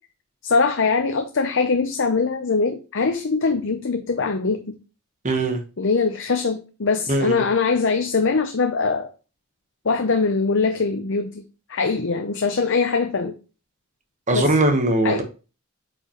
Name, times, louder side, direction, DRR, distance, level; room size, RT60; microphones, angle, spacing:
voice 1, 0.4-4.8 5.8-9.1 9.8-11.4 11.7-13.3 14.3-14.5 15.0-15.2, left 4 dB, 60° left, 0.7 m, -22 dB
voice 2, 5.2-5.6 7.1-7.4 14.3-15.2, right 2 dB, 35° right, 1.3 m, -20 dB
8.6 x 5.0 x 3.1 m
head